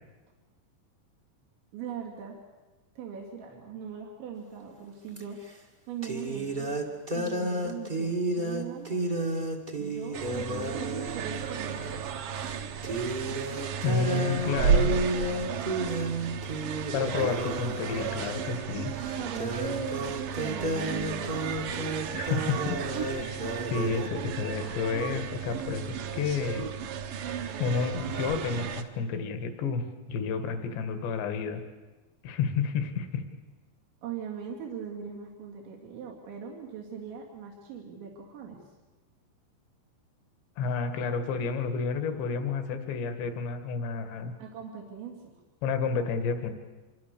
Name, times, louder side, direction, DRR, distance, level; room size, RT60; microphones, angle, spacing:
voice 1, 1.7-2.4 3.0-5.4 5.9-9.1 9.8-11.9 13.8-14.3 14.6-16.0 19.0-22.0 34.0-38.6 44.4-45.3, right 7 dB, 85° right, -1 dB, 5.1 m, -40 dB
sound 1, 5.1-5.2 6.0-12.0 12.4-12.6 12.8-24.1, right 1 dB, 30° right, 0.9 m, -32 dB
sound 2, 10.1-28.8, right 7 dB, 65° right, 2.3 m, -33 dB
voice 2, 13.8-14.9 16.9-18.9 22.1-26.7 27.6-31.6 32.2-33.2 40.6-44.3 45.6-46.5, left 5 dB, 75° left, 8 dB, 4.0 m, -31 dB
26.5 x 24.0 x 6.9 m, 1.2 s
omnidirectional pair, 5.1 m